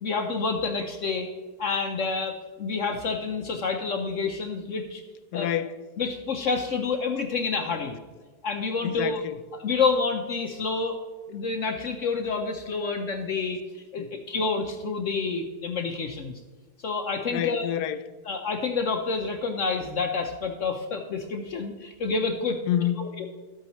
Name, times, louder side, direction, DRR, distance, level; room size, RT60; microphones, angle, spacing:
voice 1, 0.0-1.3 1.6-5.0 5.3-5.5 6.0-8.0 8.4-9.2 9.6-10.9 11.3-13.6 13.9-16.3 16.8-17.7 18.3-22.6 23.0-23.3, left 4 dB, 60° left, 0.9 m, -28 dB
voice 2, 5.3-5.8 8.8-9.4 14.0-14.1 17.3-18.1 22.7-23.1, left 11 dB, 85° left, 1.2 m, -28 dB
12.5 x 8.3 x 3.0 m
omnidirectional pair, 1.7 m